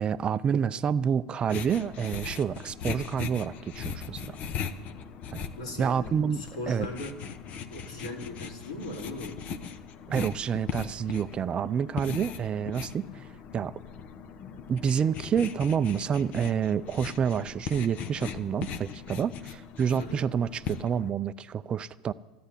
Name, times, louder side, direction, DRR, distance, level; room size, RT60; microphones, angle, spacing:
voice 1, 0.0-4.4 5.3-5.4 5.8-6.4 6.7-6.9 10.1-13.3 13.5-13.7 14.7-22.1, right 7 dB, 30° right, 0.5 m, -28 dB
sound 1, 1.4-21.1, left 7 dB, 45° left, 1.1 m, -39 dB
voice 2, 5.6-7.2 7.7-9.4 20.0-20.3, left 1 dB, 90° left, 3.8 m, -39 dB
14.0 x 9.2 x 9.9 m
hypercardioid pair, 105°, 3 cm